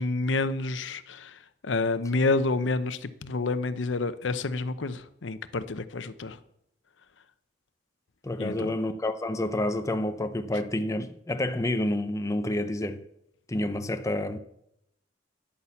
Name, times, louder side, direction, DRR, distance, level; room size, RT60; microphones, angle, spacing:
voice 1, 0.0-1.4 1.6-6.4 8.4-8.7, left 3 dB, 90° left, 0.7 m, -29 dB
voice 2, 8.2-13.0 13.5-14.4, left 1 dB, 15° left, 0.6 m, -29 dB
10.5 x 8.7 x 7.0 m
head